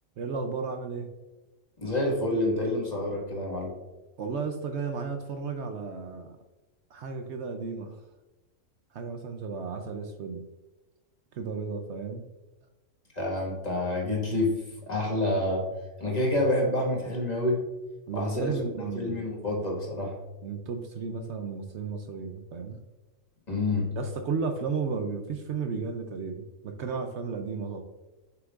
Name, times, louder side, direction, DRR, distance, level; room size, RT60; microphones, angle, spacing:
voice 1, 0.2-1.1 4.2-6.4 6.9-8.0 8.9-10.4 11.3-12.2 18.1-19.2 20.4-22.8 24.0-27.8, right 5 dB, 65° right, 6 dB, 0.9 m, -33 dB
voice 2, 1.8-3.7 13.1-14.6 14.8-15.7 16.0-17.6 18.1-18.5 18.9-20.2 23.5-23.9, left 1 dB, 30° left, -2 dB, 1.7 m, -28 dB
7.5 x 5.9 x 2.5 m, 1.1 s
omnidirectional pair, 1.4 m